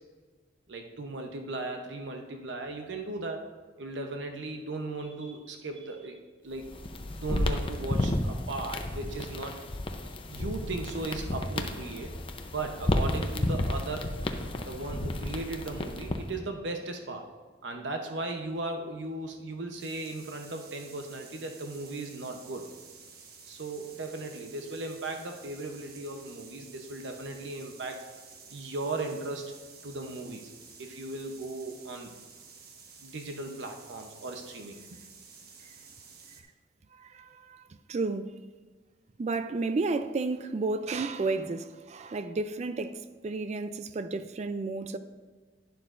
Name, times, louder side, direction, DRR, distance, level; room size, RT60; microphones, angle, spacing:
voice 1, 0.7-3.4 3.8-6.2 6.4-6.7 7.2-9.6 10.3-12.1 12.5-14.1 14.7-17.3 17.6-22.7 23.5-28.0 28.5-29.5 29.8-30.5 30.8-32.1 33.0-35.0, right 2 dB, 80° right, 0.8 m, -37 dB
sound 1, 6.6-16.4, left 1 dB, 30° left, 0.6 m, -32 dB
sound 2, 19.8-36.4, right 5 dB, 55° right, 1.2 m, -51 dB
voice 2, 36.9-37.6 37.9-38.4 39.2-45.0, right 3 dB, 40° right, 0.3 m, -32 dB
11.0 x 10.5 x 2.5 m
head